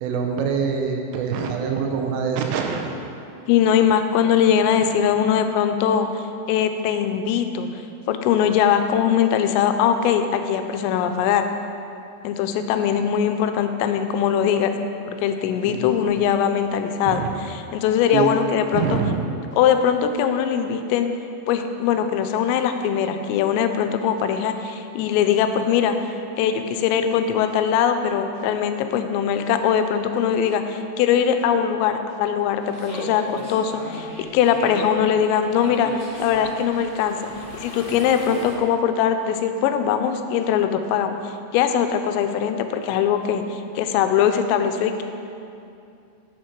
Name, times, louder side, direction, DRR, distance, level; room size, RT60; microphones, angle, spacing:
voice 1, 0.0-2.8 15.7-15.8 17.1-17.3 18.1-18.3 18.7-19.3, right 6 dB, 85° right, 3 dB, 3.2 m, -24 dB
voice 2, 3.5-7.7 8.1-11.5 12.2-14.7 15.1-17.2 17.5-19.0 19.6-21.1 21.5-34.1 34.3-35.9 36.2-37.2 37.5-41.2 41.5-45.0, left 8 dB, 90° left, 7 dB, 3.2 m, -21 dB
sound 1, 32.6-38.5, equal, 30° left, 1.9 m, -36 dB
9.3 x 7.8 x 4.5 m, 2.6 s
omnidirectional pair, 5.8 m